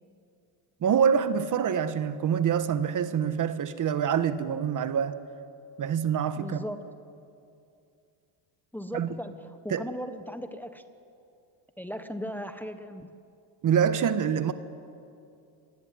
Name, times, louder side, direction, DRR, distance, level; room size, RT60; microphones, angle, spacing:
voice 1, 0.8-5.2 5.8-6.6 8.9-9.1 9.7-9.9 13.6-14.5, right 8 dB, 40° right, 1.4 m, -26 dB
voice 2, 6.4-6.8 8.7-9.3 9.6-10.8 11.8-13.1, equal, 5° left, 1.1 m, -37 dB
27.0 x 19.5 x 9.8 m
cardioid pair, 120°, 47 cm